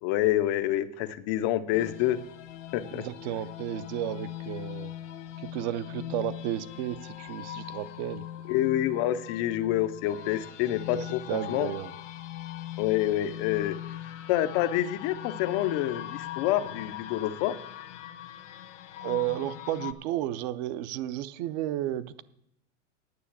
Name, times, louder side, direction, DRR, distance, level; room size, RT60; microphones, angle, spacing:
voice 1, 0.0-2.2 2.7-3.1 8.5-11.7 12.8-13.8 14.3-17.6, left 13 dB, 25° left, 12 dB, 0.4 m, -27 dB
sound 1, 1.7-19.9, left 12 dB, 80° left, 1.3 m, -40 dB
voice 2, 2.9-4.9 5.4-8.3 10.9-11.9 19.0-22.2, right 12 dB, 40° right, 17 dB, 0.5 m, -33 dB
9.6 x 6.7 x 8.5 m, 0.78 s
supercardioid pair, 160°, 36 cm